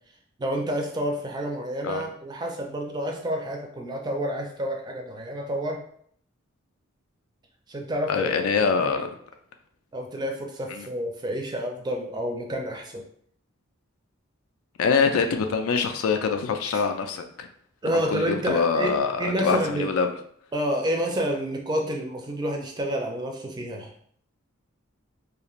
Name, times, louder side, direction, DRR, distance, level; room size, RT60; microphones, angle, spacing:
voice 1, 0.4-5.8 7.7-8.3 8.8-9.0 9.9-13.0 16.7-16.8 17.8-19.9 20.5-23.9, equal, 20° right, 2 dB, 0.3 m, -29 dB
voice 2, 8.1-9.1 10.7-10.9 14.8-17.5 17.9-20.1, left 5 dB, 90° left, 6 dB, 0.4 m, -24 dB
2.5 x 2.4 x 3.0 m, 0.63 s
head